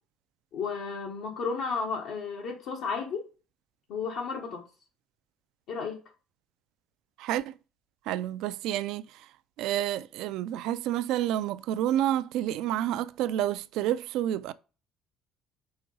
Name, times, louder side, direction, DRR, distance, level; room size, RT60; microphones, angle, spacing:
voice 1, 0.5-3.3 3.9-4.6 5.7-6.0, left 5 dB, 70° left, 1.2 m, -33 dB
voice 2, 7.2-7.6 8.1-9.3 9.6-14.5, right 12 dB, 75° right, 0.4 m, -29 dB
4.9 x 3.9 x 5.3 m
cardioid pair, 125°, 0 cm